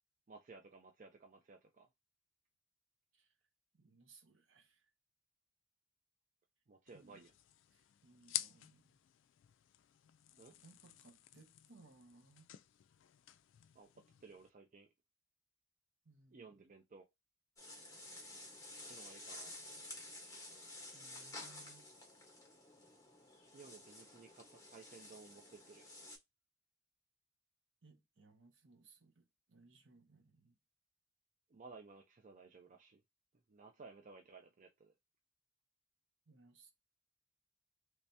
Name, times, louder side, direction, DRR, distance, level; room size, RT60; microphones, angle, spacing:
voice 1, 0.3-1.9 6.7-7.3 10.4-10.5 13.7-14.9 16.3-17.0 18.9-19.8 23.5-25.9 31.5-33.0 33.5-34.9, right 4 dB, 40° right, 0.4 m, -57 dB
voice 2, 3.7-4.9 6.9-7.3 7.7-9.0 10.6-12.5 16.0-16.5 20.9-21.8 27.8-30.6 36.3-36.7, right 3 dB, 65° right, 0.9 m, -64 dB
sound 1, 6.9-14.5, left 14 dB, 65° left, 0.3 m, -50 dB
sound 2, 17.6-26.2, left 2 dB, 15° left, 1.1 m, -52 dB
3.2 x 2.8 x 3.2 m
head